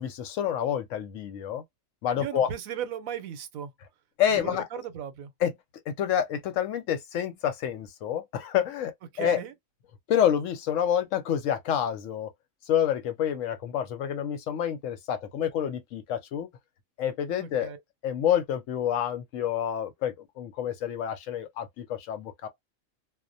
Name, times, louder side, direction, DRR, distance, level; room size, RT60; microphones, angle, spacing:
voice 1, 0.0-1.6 2.0-2.5 4.2-4.7 5.4-5.5 5.9-9.4 10.1-12.3 12.7-16.5 17.0-17.7 18.0-22.5, left 9 dB, 70° left, 0.9 m, -28 dB
voice 2, 2.2-3.7 4.3-5.3 9.1-9.5 17.4-17.8, right 9 dB, 85° right, 1.0 m, -36 dB
2.3 x 2.1 x 2.5 m
omnidirectional pair, 1.4 m